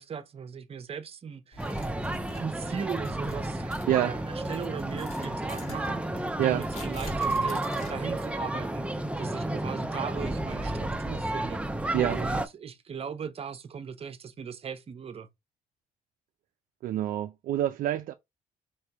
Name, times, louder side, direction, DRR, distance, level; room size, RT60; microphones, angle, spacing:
voice 1, 0.0-1.8 2.4-3.7 4.0-11.6 12.0-15.3, right 6 dB, 40° right, 0.8 m, -38 dB
sound 1, 1.5-8.4, left 2 dB, 45° left, 2.5 m, -49 dB
sound 2, 1.6-12.5, right 1 dB, 10° right, 0.6 m, -31 dB
voice 2, 16.8-18.1, right 13 dB, 70° right, 0.4 m, -27 dB
4.6 x 3.3 x 2.9 m
cardioid pair, 80°, 15 cm